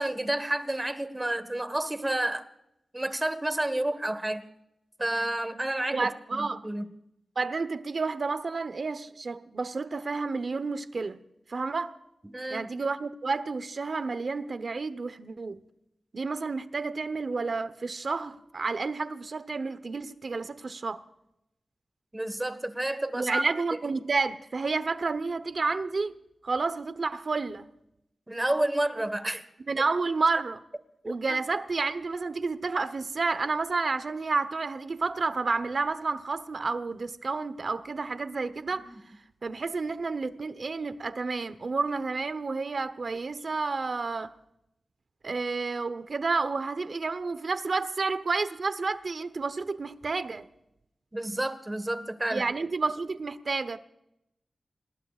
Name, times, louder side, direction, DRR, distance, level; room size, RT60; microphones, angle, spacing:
voice 1, 0.0-2.4 2.9-4.4 5.0-6.9 12.3-12.7 22.1-23.4 28.3-29.4 31.0-31.4 38.7-38.8 51.1-52.4, right 1 dB, 20° right, 1.6 m, -30 dB
voice 2, 5.9-6.6 7.4-11.2 11.5-12.0 12.5-15.6 16.1-21.0 23.1-26.2 26.4-27.7 29.7-30.6 31.0-38.9 39.4-44.3 45.2-50.5 52.3-53.8, right 4 dB, 60° right, 1.0 m, -30 dB
27.5 x 20.0 x 2.5 m
cardioid pair, 70°, 0 cm